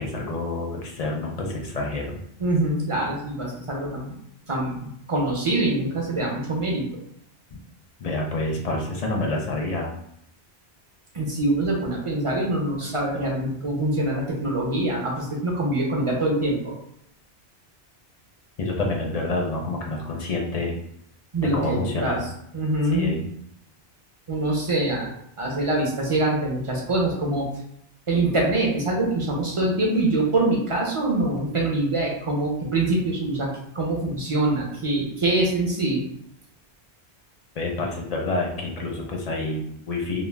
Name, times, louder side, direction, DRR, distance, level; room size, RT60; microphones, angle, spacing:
voice 1, 0.0-2.2 7.5-7.6 8.0-9.9 18.6-20.7 21.4-22.2 22.9-23.2 37.6-40.2, left 2 dB, 50° left, 0 dB, 0.5 m, -28 dB
voice 2, 2.4-4.2 4.4-6.8 11.1-16.7 21.3-22.2 22.5-23.1 24.3-27.5 28.1-33.5 33.7-36.0, right 2 dB, 40° right, -2 dB, 0.5 m, -24 dB
2.3 x 2.1 x 3.2 m, 0.75 s
omnidirectional pair, 1.1 m